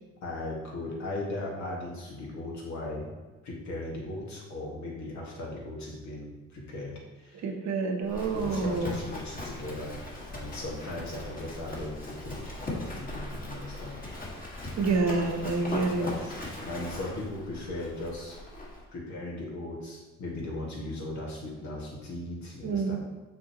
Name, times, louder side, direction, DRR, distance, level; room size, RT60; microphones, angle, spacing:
voice 1, 0.2-3.1 3.4-7.5 8.3-14.5 15.3-15.4 16.0-16.4 16.6-18.4 18.9-23.0, left 1 dB, 70° left, -2 dB, 1.8 m, -38 dB
voice 2, 7.4-9.0 14.8-16.1 22.6-23.0, right 4 dB, 65° right, 3 dB, 1.0 m, -28 dB
Livestock farm animals working animals, 8.0-18.8, left 1 dB, 30° left, 1.8 m, -39 dB
6.4 x 5.3 x 3.0 m, 1.2 s
cardioid pair, 90°, 30 cm